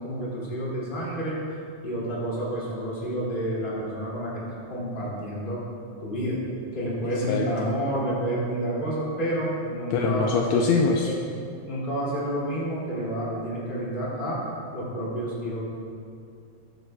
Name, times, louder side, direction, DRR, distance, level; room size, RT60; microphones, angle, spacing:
voice 1, 0.0-1.4 1.8-4.4 4.7-5.6 6.0-6.4 6.7-10.6 11.1-11.2 11.7-14.4 14.7-15.6, right 1 dB, 20° left, -7 dB, 2.1 m, -29 dB
voice 2, 7.2-7.7 9.9-11.1, left 4 dB, 80° left, 1 dB, 1.7 m, -24 dB
14.0 x 10.5 x 2.3 m, 2.4 s
omnidirectional pair, 3.3 m